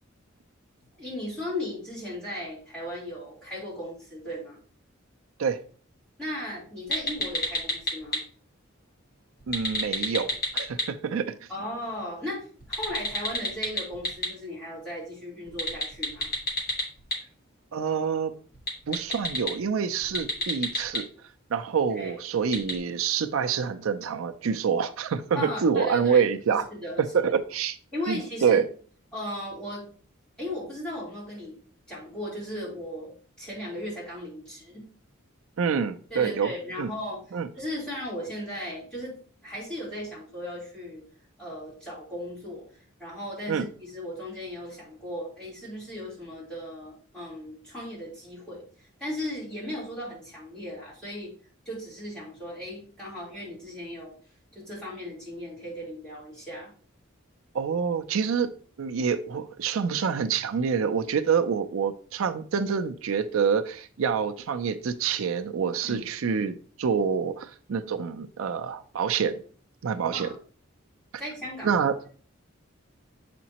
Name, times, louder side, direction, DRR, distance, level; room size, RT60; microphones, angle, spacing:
voice 1, 1.0-4.6 6.2-8.2 11.5-16.3 21.9-22.2 25.4-27.0 27.9-28.6 29.1-29.9 30.4-31.5 31.9-33.1 33.4-34.9 36.1-39.2 39.4-41.0 41.4-42.7 43.0-51.3 51.7-54.1 54.5-56.7 65.8-66.1 70.1-70.4 71.2-71.8, left 1 dB, 5° left, -9 dB, 3.4 m, -36 dB
sound 1, 6.9-8.2 9.4-10.8 12.6-14.3 15.5-17.1 18.5-19.5 20.0-21.0 22.5-22.7, left 1 dB, 45° left, 1.8 m, -27 dB
voice 2, 9.5-11.3 17.7-18.3 18.9-21.1 21.5-26.7 27.1-27.8 28.1-28.7 35.6-36.5 36.8-36.9 37.3-37.5 43.5-43.7 57.5-58.5 58.8-69.4 69.8-70.3 71.6-72.0, right 6 dB, 80° right, 9 dB, 0.4 m, -26 dB
7.2 x 5.1 x 2.9 m, 0.43 s
head